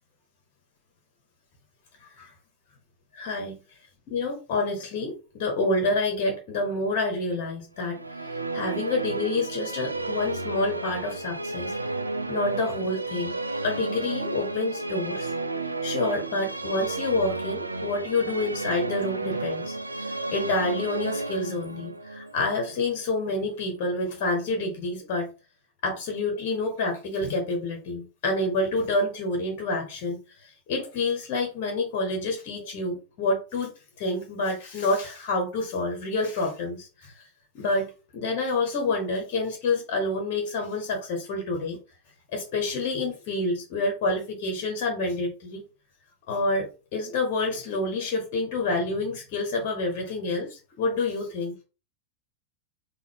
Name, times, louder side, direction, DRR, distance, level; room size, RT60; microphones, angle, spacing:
voice 1, 3.1-3.6 4.1-8.0 8.5-11.7 12.3-13.3 13.6-15.3 15.8-25.3 25.8-33.7 34.0-37.3 37.5-41.8 42.3-45.6 46.3-51.5, left 2 dB, 45° left, 3 dB, 1.2 m, -28 dB
Musical instrument, 7.8-23.3, right 3 dB, 80° right, 0.3 m, -32 dB
3.7 x 2.6 x 3.5 m, 0.32 s
figure-of-eight pair, 90°, 0 cm